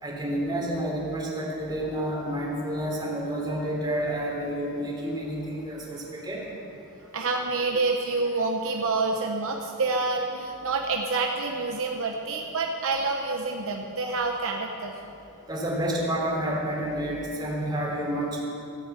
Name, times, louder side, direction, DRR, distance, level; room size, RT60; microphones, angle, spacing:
voice 1, 0.0-6.4 15.5-18.4, right 1 dB, 20° right, -3 dB, 3.1 m, -29 dB
voice 2, 7.1-14.9, right 3 dB, 65° right, 2 dB, 1.0 m, -27 dB
15.0 x 8.6 x 8.1 m, 2.6 s
head